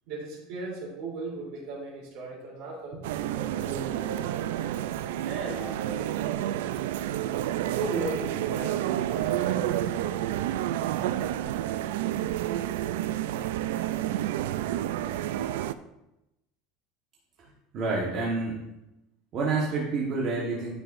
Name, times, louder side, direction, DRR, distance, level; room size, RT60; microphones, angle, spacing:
voice 1, 0.1-4.2 5.3-6.0 7.7-10.2, right 3 dB, 55° right, -4 dB, 3.2 m, -37 dB
sound 1, 3.0-15.7, right 12 dB, 90° right, 0.3 m, -30 dB
voice 2, 17.7-18.6 19.3-20.7, right 3 dB, 35° right, -4 dB, 1.2 m, -28 dB
9.5 x 7.7 x 2.5 m, 0.93 s
cardioid pair, 160°, 0 cm